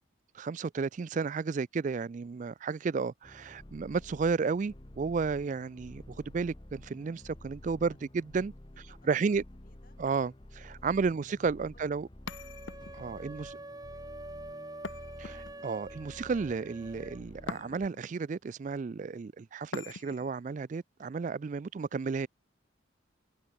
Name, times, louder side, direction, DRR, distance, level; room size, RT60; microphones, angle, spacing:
voice 1, 0.3-8.5 9.1-9.4 10.0-12.1 12.9-13.5 15.2-22.3, right 5 dB, 40° right, 0.3 m, -32 dB
sound 1, 3.2-17.9, left 1 dB, 25° left, 1.0 m, -51 dB
voice 2, 8.7-10.0 10.4-11.3 11.7-12.0 13.1-13.5 13.7-14.4 21.7-21.8, left 2 dB, 45° left, 5.7 m, -69 dB
sound 2, 12.3-13.2 14.8-15.8 17.5-18.1 19.7-20.4, left 4 dB, 70° left, 0.8 m, -43 dB
sound 3, 12.3-17.2, right 2 dB, 20° right, 1.3 m, -46 dB
head